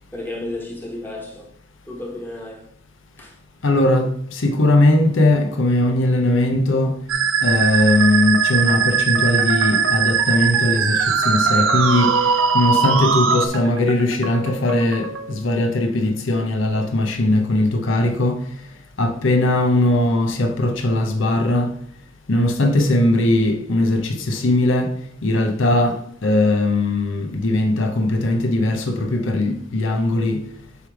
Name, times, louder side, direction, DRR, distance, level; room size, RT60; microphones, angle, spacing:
voice 1, 0.1-1.5 1.9-2.7 3.2-3.4, left 1 dB, 10° left, 1.4 m, -32 dB
voice 2, 3.6-7.0 7.4-18.5 19.0-21.8 22.3-30.5, left 1 dB, 70° left, 0.7 m, -19 dB
Musical instrument, 7.1-13.5, right 6 dB, 85° right, 0.6 m, -19 dB
sound 1, 8.0-15.4, right 4 dB, 65° right, 1.0 m, -32 dB
8.1 x 3.2 x 4.9 m
head